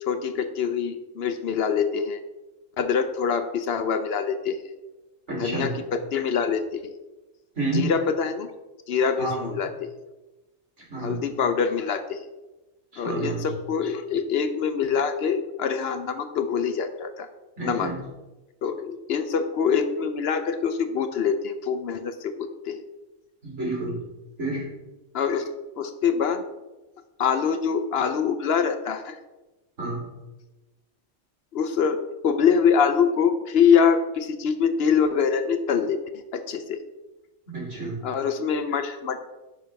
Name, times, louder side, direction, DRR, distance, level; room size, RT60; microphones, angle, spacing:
voice 1, 0.0-2.2 2.8-4.6 5.4-6.8 7.7-8.5 8.9-9.7 11.0-12.2 13.0-17.3 17.6-17.9 18.6-22.8 25.1-25.5 25.8-26.4 27.2-29.2 31.5-36.0 36.3-36.8 38.0-39.2, left 6 dB, 65° left, 9 dB, 0.8 m, -24 dB
voice 2, 5.3-5.8 7.6-7.9 9.2-9.5 10.9-11.2 12.9-13.5 17.6-17.9 23.4-24.0 24.4-24.7 29.8-30.0 37.5-37.9, right 2 dB, 75° right, -5 dB, 3.6 m, -29 dB
9.7 x 5.7 x 3.4 m, 1.1 s
omnidirectional pair, 1.2 m